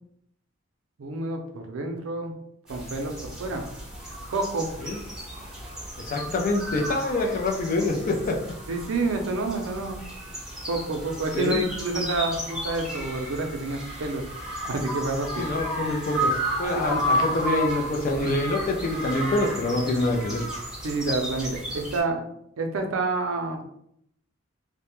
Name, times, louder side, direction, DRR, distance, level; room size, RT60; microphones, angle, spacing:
voice 1, 1.0-2.4 2.7-3.6 4.3-4.7 8.7-10.0 10.6-14.2 14.7-15.5 16.8-17.0 20.8-22.2 22.6-23.6, right 2 dB, 85° right, 4 dB, 0.4 m, -28 dB
sound 1, 2.7-22.0, equal, 5° right, 0.7 m, -33 dB
voice 2, 6.0-8.4 11.3-11.7 15.4-20.4, left 2 dB, 45° left, 2 dB, 0.4 m, -26 dB
2.2 x 2.0 x 2.9 m, 0.73 s
head